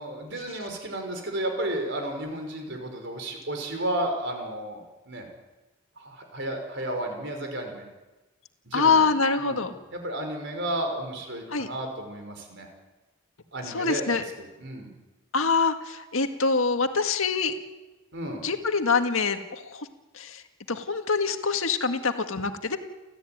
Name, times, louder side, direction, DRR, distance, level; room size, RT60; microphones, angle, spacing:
voice 1, 0.0-5.3 6.0-7.8 8.7-9.1 9.4-12.7 13.5-14.1 14.4-14.9 18.1-18.4, right 1 dB, 55° right, 4 dB, 5.5 m, -33 dB
voice 2, 8.7-9.7 11.5-11.7 13.7-14.2 15.3-17.5 18.4-19.9 20.1-20.4 20.7-22.8, left 4 dB, 75° left, 7 dB, 1.8 m, -25 dB
29.5 x 13.5 x 9.4 m, 1.1 s
head